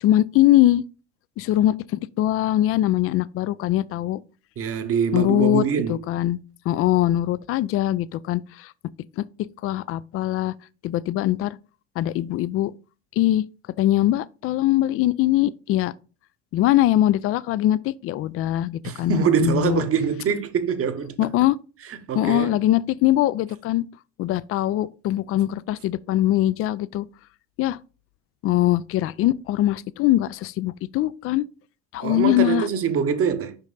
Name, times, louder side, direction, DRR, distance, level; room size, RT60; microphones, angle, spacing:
voice 1, 0.0-0.8 1.4-4.2 5.1-6.4 6.7-8.7 9.2-9.3 9.6-10.5 10.8-11.6 12.0-12.7 13.2-13.4 13.8-15.9 16.5-19.8 21.2-21.6 22.2-23.8 24.2-27.1 27.6-27.8 28.4-31.5 31.9-32.7, left 14 dB, 40° left, 0.4 m, -22 dB
voice 2, 4.6-6.0 18.8-21.2 21.9-22.6 32.0-33.6, right 7 dB, 40° right, 1.0 m, -24 dB
5.3 x 5.1 x 3.9 m
hypercardioid pair, 70°, 35 cm